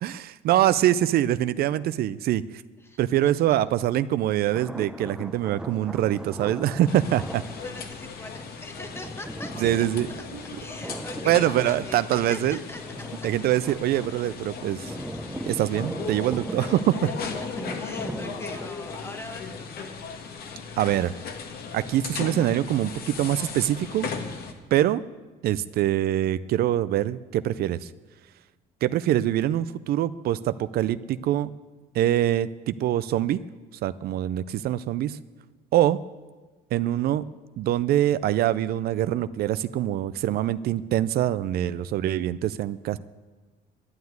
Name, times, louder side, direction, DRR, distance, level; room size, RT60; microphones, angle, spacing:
voice 1, 0.0-2.4 3.0-7.4 9.6-10.1 10.3-10.4 11.3-12.6 13.2-15.0 15.5-17.1 20.8-21.1 21.7-24.1 24.7-25.0 25.4-27.9 28.8-31.5 31.9-33.4 33.8-35.2 35.7-36.0 36.7-37.2 37.6-43.0, right 12 dB, 65° right, 15 dB, 0.5 m, -24 dB
sound 1, 4.5-18.7, right 1 dB, 5° right, 0.7 m, -39 dB
Fish Cleaning (Wild), 6.9-24.5, left 5 dB, 65° left, 1.6 m, -37 dB
voice 2, 7.6-9.9 10.2-10.3 10.6-13.3 16.7-16.8 17.7-19.7, left 1 dB, 15° left, 7 dB, 1.5 m, -42 dB
11.5 x 9.4 x 9.3 m, 1.3 s
cardioid pair, 110°, 17 cm